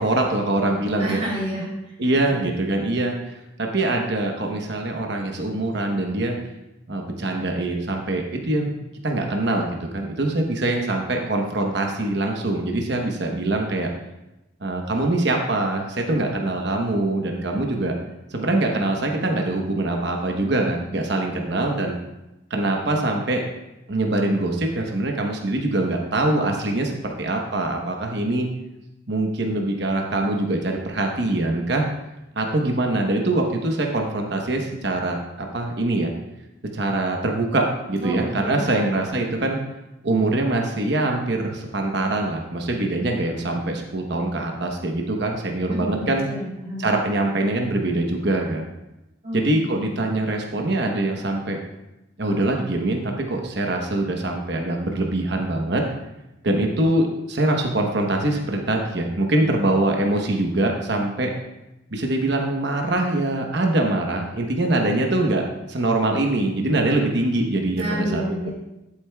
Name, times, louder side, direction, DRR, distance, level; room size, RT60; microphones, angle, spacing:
voice 1, 0.0-1.2 2.0-3.2 3.6-6.4 6.9-8.8 9.0-9.7 9.9-13.9 14.6-17.9 18.3-21.9 22.5-23.4 23.9-28.5 29.1-31.9 32.4-36.1 36.7-39.6 40.0-46.2 46.8-48.7 49.3-51.6 52.2-55.8 56.4-61.3 61.9-68.5, right 2 dB, 55° right, 2 dB, 1.0 m, -23 dB
voice 2, 1.0-1.7 2.3-2.4 38.0-38.9 45.7-46.9 49.2-49.5 49.9-50.0 67.7-68.5, equal, 30° right, -5 dB, 3.2 m, -30 dB
11.5 x 8.2 x 2.3 m, 0.95 s
head